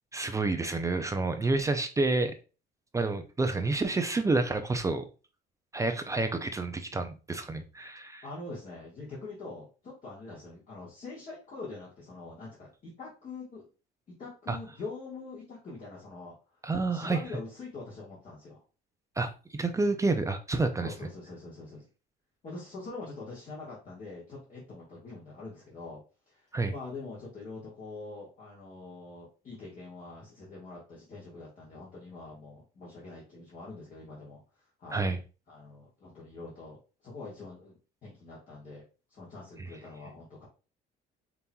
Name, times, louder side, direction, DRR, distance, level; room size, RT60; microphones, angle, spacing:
voice 1, 0.1-2.4 2.9-5.1 5.7-8.2 14.5-14.6 16.6-17.2 19.2-20.9 26.5-26.7 34.9-35.2, right 3 dB, 15° right, 0.4 m, -29 dB
voice 2, 8.2-13.7 14.2-16.6 16.9-18.6 20.8-21.9 22.4-26.0 26.3-35.0 35.5-36.8 37.0-37.7 38.0-38.8 39.1-40.5, left 3 dB, 40° left, 1.6 m, -44 dB
5.3 x 2.9 x 2.2 m
cardioid pair, 120°, 20 cm